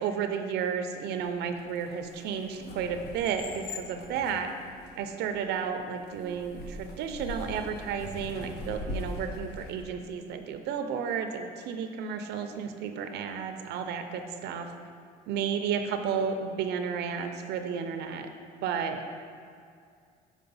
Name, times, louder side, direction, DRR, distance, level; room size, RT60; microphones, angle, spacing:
voice 1, 0.0-4.5 5.0-14.7 15.3-18.3 18.6-19.1, right 7 dB, 80° right, 7 dB, 0.6 m, -32 dB
sound 1, 1.2-9.8, left 2 dB, 80° left, 0.8 m, -42 dB
6.8 x 4.5 x 5.5 m, 2.2 s
cardioid pair, 110°, 17 cm